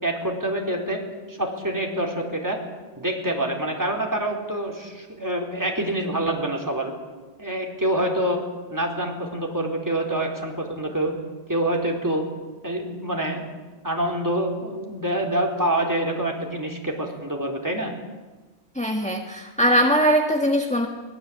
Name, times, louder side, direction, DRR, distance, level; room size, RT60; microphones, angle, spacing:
voice 1, 0.0-1.0 1.3-2.6 3.0-6.9 7.4-8.4 8.7-11.1 11.5-12.3 12.6-13.4 13.8-17.9, right 1 dB, 15° right, 2 dB, 4.1 m, -26 dB
voice 2, 18.7-20.9, equal, 5° left, 3 dB, 1.5 m, -21 dB
23.5 x 19.5 x 8.7 m, 1.2 s
omnidirectional pair, 1.3 m